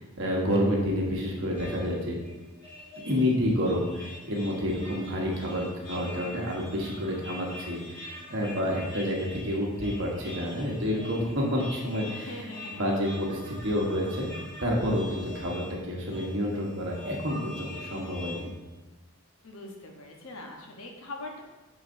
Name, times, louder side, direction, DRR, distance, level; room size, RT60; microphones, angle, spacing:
voice 1, 0.2-2.2 3.0-12.3 12.8-18.5, equal, 55° right, -2 dB, 1.2 m, -29 dB
sound 1, 1.5-18.4, left 1 dB, 15° left, 2.0 m, -45 dB
voice 2, 12.1-13.0 19.4-21.4, left 2 dB, 70° left, 1 dB, 1.0 m, -42 dB
9.1 x 4.0 x 2.6 m, 1.1 s
head